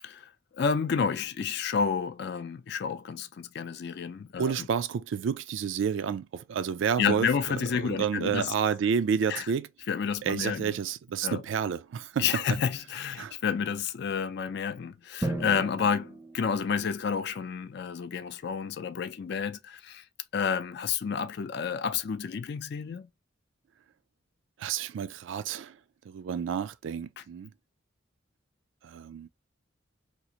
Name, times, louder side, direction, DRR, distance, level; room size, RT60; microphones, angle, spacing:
voice 1, 0.0-4.7 7.0-8.5 9.3-9.5 9.9-10.8 11.2-11.4 12.2-20.0 20.3-23.1 27.2-27.3, left 6 dB, 55° left, 0.4 m, -30 dB
voice 2, 4.4-9.7 10.2-12.3 13.2-13.4 24.6-25.7 26.1-27.5 28.8-29.3, right 7 dB, 65° right, 0.3 m, -30 dB
Drum, 15.2-17.1, right 2 dB, 10° right, 0.5 m, -36 dB
2.9 x 2.5 x 2.7 m
head